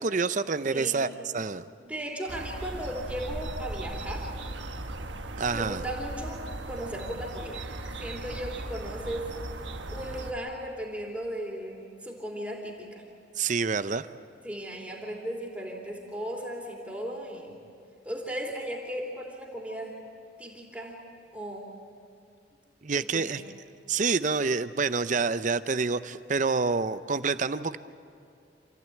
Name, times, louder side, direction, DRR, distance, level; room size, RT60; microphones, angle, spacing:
voice 1, 0.0-1.7 5.4-5.8 13.4-14.1 22.8-23.4 23.9-27.8, right 4 dB, 45° right, 13 dB, 0.6 m, -27 dB
voice 2, 0.7-1.0 1.8-4.3 5.5-6.4 6.7-7.6 8.0-9.3 9.9-13.0 14.4-17.5 18.0-19.9 20.4-21.0 21.3-21.7 22.9-23.4, equal, 10° right, -2 dB, 3.1 m, -36 dB
sound 1, 2.3-10.3, right 2 dB, 85° right, 1.3 m, -38 dB
27.5 x 15.5 x 9.2 m, 2.4 s
head